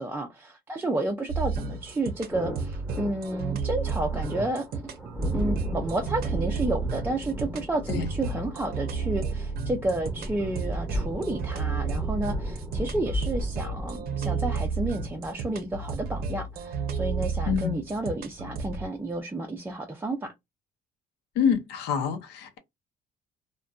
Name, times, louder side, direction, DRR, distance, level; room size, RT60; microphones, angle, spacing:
voice 1, 0.0-4.8 5.3-20.3, right 2 dB, 10° right, 0.4 m, -31 dB
sound 1, 1.3-18.9, right 5 dB, 65° right, 0.6 m, -32 dB
sound 2, 1.6-19.1, right 1 dB, 5° left, 0.9 m, -36 dB
voice 2, 17.5-17.8 21.4-22.6, left 7 dB, 85° left, 0.6 m, -26 dB
2.5 x 2.1 x 2.3 m
cardioid pair, 110°, 17 cm